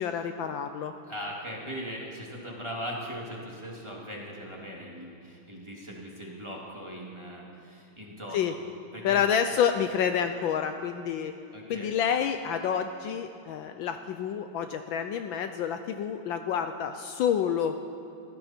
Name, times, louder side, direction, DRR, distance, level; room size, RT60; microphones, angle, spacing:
voice 1, 0.0-0.9 8.3-8.6 9.0-11.3 11.7-17.8, left 8 dB, 75° left, 8 dB, 1.3 m, -28 dB
voice 2, 1.1-8.6 8.9-9.2 11.5-11.9, equal, 15° right, -3 dB, 2.2 m, -39 dB
20.5 x 15.5 x 4.4 m, 2.9 s
omnidirectional pair, 2.4 m